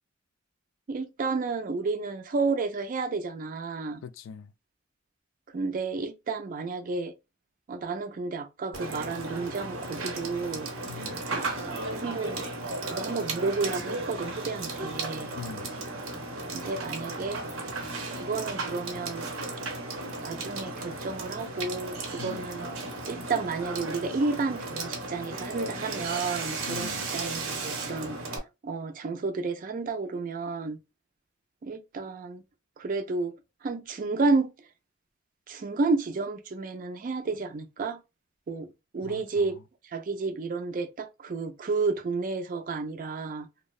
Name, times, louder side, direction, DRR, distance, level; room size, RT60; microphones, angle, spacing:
voice 1, 0.9-4.0 5.5-7.1 7.7-10.7 11.3-12.4 12.9-15.4 16.5-17.4 17.8-19.3 20.2-22.7 23.1-28.2 28.6-30.8 31.6-32.4 32.8-33.3 33.6-34.5 35.5-38.0 38.5-39.6 39.9-43.5, right 4 dB, 40° right, 0.4 m, -31 dB
voice 2, 4.0-4.5 10.9-11.2 15.4-15.7 22.2-22.5 26.7-27.1 39.0-39.6, left 6 dB, 70° left, 0.3 m, -42 dB
Water / Water tap faucet / Sink (filling or washing), 8.7-28.4, right 2 dB, 85° right, 0.7 m, -35 dB
2.7 x 2.0 x 2.3 m
head